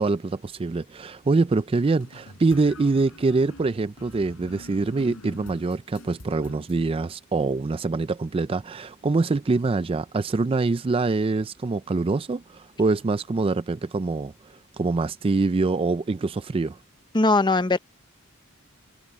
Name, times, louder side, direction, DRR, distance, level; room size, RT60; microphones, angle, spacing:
voice 1, 0.0-14.3 14.8-16.8, right 3 dB, 25° right, 0.4 m, -24 dB
sound 1, 1.9-6.8, left 1 dB, 80° left, 3.9 m, -46 dB
voice 2, 17.1-17.8, left 2 dB, 20° left, 0.8 m, -19 dB
head